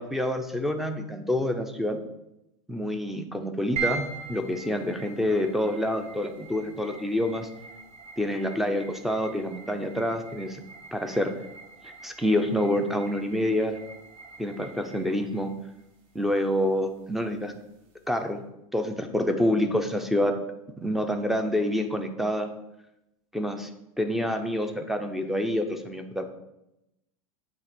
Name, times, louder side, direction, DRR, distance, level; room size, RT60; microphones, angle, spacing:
voice 1, 0.0-2.0 2.7-7.5 8.2-10.6 10.9-11.3 11.8-13.8 14.4-15.5 16.2-17.5 18.1-18.4 18.7-20.4 20.8-22.5 23.3-23.7 24.0-26.2, left 1 dB, ahead, 6 dB, 0.5 m, -27 dB
sound 1, 3.8-18.2, right 6 dB, 50° right, 2.2 m, -42 dB
8.6 x 2.9 x 6.0 m, 0.88 s
supercardioid pair, 140°, 18 cm